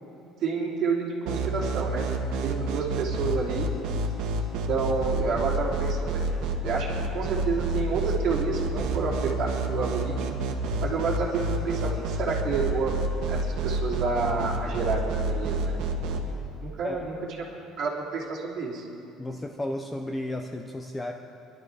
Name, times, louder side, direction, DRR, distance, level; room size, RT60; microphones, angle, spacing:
voice 1, 0.4-2.1 2.4-3.7 4.5-13.0 13.3-15.0 15.3-16.3 16.6-17.1 17.5-18.9, right 4 dB, 40° right, -4 dB, 3.0 m, -30 dB
sound 1, 1.3-16.2, right 3 dB, 75° right, 1.6 m, -28 dB
voice 2, 19.2-21.1, left 1 dB, 10° left, 3 dB, 0.6 m, -33 dB
24.0 x 12.0 x 4.8 m, 2.9 s
cardioid pair, 180°, 0 cm